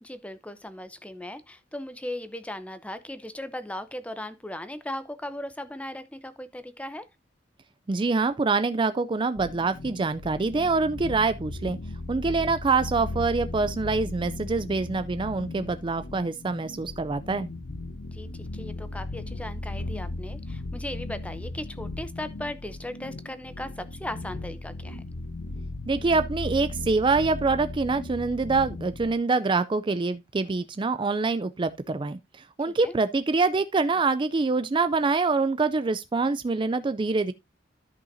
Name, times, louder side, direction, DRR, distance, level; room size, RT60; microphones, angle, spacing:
voice 1, 0.0-7.1 12.3-12.5 18.1-25.0 32.7-32.9, left 1 dB, 5° left, 0.7 m, -37 dB
voice 2, 7.9-11.8 12.1-17.5 25.9-32.2 32.6-37.3, right 3 dB, 25° right, 0.4 m, -25 dB
sound 1, 9.4-29.1, left 2 dB, 70° left, 0.8 m, -37 dB
13.0 x 5.6 x 2.7 m
head